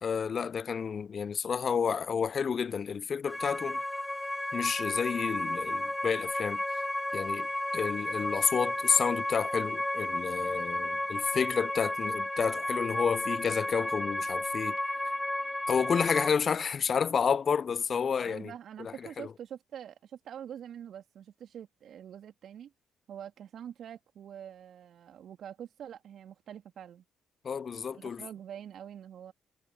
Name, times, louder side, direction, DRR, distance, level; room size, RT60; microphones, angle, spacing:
voice 1, 0.0-3.8 4.5-6.6 7.1-7.5 7.7-14.8 15.7-18.5 18.8-19.3 27.4-28.2, left 6 dB, 45° left, 1.0 m, -30 dB
sound 1, 3.3-16.3, left 1 dB, 10° left, 4.1 m, -33 dB
voice 2, 18.2-22.7 23.1-27.0 27.9-29.3, right 9 dB, 60° right, 3.1 m, -45 dB
hypercardioid pair, 45°, 0 cm